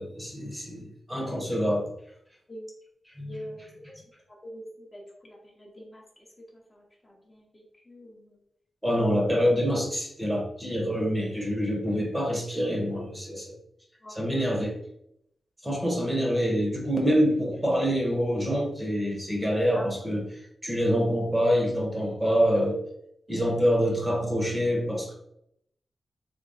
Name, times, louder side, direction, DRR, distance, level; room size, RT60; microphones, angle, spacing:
voice 1, 0.0-1.9 3.2-3.4 8.8-13.6 14.1-14.8 15.6-20.2 20.6-22.8 23.3-25.1, equal, 10° right, -1 dB, 0.9 m, -26 dB
voice 2, 3.2-3.7 4.4-6.0 6.5-8.4 14.0-14.5 19.7-19.9 23.6-23.7, equal, 25° left, -2 dB, 0.9 m, -45 dB
3.5 x 2.1 x 4.0 m, 0.74 s
wide cardioid pair, 95°, 0 cm